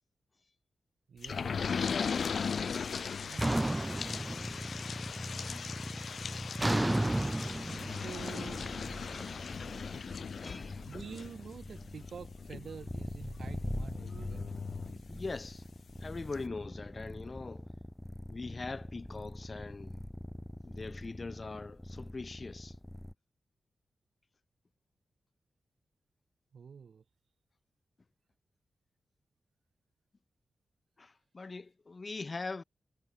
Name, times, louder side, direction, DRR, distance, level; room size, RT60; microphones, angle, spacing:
voice 1, 1.1-1.6 3.2-3.6 8.0-9.5 10.9-14.5 26.5-27.0, right 6 dB, 70° right, 7.1 m, -48 dB
sound 1, 1.2-15.5 16.0-16.1 16.3-16.4, left 6 dB, 65° left, 3.5 m, -39 dB
sound 2, 3.4-4.9 5.3-5.7 6.6-9.7, right 1 dB, 15° right, 1.6 m, -32 dB
sound 3, 3.7-23.1, left 1 dB, 10° left, 2.8 m, -44 dB
voice 2, 9.4-9.7 10.4-10.8 15.1-15.6 16.0-17.7 18.3-20.0 20.6-22.7 31.0-32.6, left 3 dB, 35° left, 2.3 m, -42 dB
wide cardioid pair, 105°, 0 cm